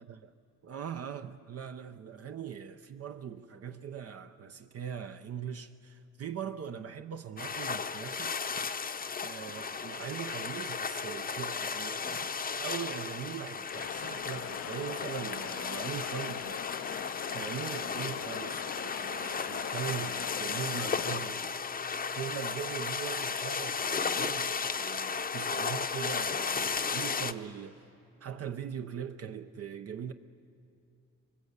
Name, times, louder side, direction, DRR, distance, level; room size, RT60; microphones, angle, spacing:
voice 1, 0.0-0.3 0.6-8.4 9.2-16.7 17.3-21.5 22.2-27.8 28.2-30.1, right 8 dB, 50° right, 0.8 m, -41 dB
sound 1, 7.4-27.3, left 5 dB, 30° left, 0.8 m, -35 dB
sound 2, 13.7-21.2, left 10 dB, 55° left, 0.6 m, -41 dB
24.5 x 21.0 x 8.1 m
cardioid pair, 90°, 30 cm